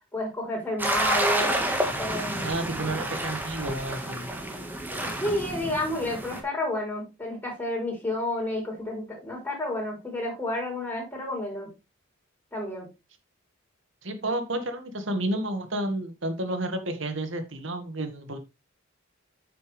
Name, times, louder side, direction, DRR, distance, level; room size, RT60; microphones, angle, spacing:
voice 1, 0.1-1.5 2.0-2.6 4.9-11.7 12.5-12.9, left 1 dB, 10° left, -2 dB, 4.1 m, -30 dB
sound 1, 0.8-6.4, right 1 dB, 10° right, 1.6 m, -29 dB
voice 2, 2.4-4.3 14.0-18.4, right 1 dB, 65° right, 8 dB, 1.8 m, -31 dB
9.2 x 6.8 x 3.4 m, 0.25 s
head